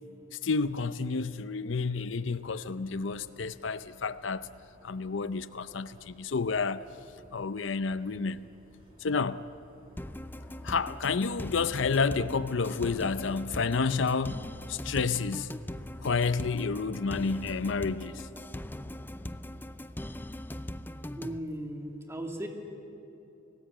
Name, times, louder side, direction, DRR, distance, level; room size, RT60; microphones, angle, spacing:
voice 1, 0.4-4.5 4.8-6.8 7.3-8.5 9.0-9.4 10.6-14.4 14.7-15.5 16.0-18.3, left 4 dB, 70° left, 0.6 m, -30 dB
sound 1, 2.3-20.2, equal, 30° right, 5.3 m, -59 dB
sound 2, 10.0-21.4, left 1 dB, 10° left, 0.6 m, -40 dB
voice 2, 21.1-22.5, right 1 dB, 15° right, 2.5 m, -37 dB
30.0 x 19.0 x 8.8 m
head